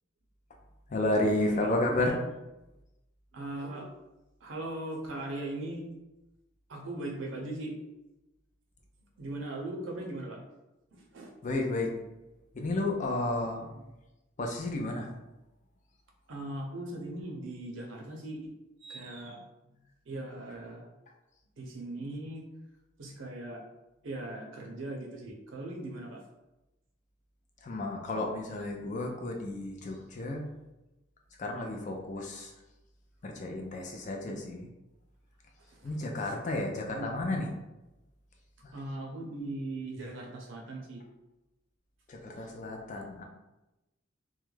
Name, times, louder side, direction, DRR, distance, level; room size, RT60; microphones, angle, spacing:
voice 1, 0.9-2.2 11.4-11.9 12.6-13.7 14.4-15.1 27.6-30.4 31.4-32.5 33.2-34.6 35.8-37.5 42.1-43.2, left 2 dB, 40° left, 1 dB, 0.4 m, -32 dB
voice 2, 1.4-2.2 3.3-3.9 4.4-5.9 6.7-7.7 9.2-10.4 10.9-11.3 13.7-13.8 16.3-18.5 18.8-19.4 20.1-20.9 21.6-22.4 23.0-23.6 24.0-26.2 34.0-34.4 35.7-36.4 36.9-37.3 38.7-41.0, right 1 dB, 75° right, 1 dB, 0.6 m, -39 dB
2.3 x 2.1 x 3.1 m, 0.98 s
head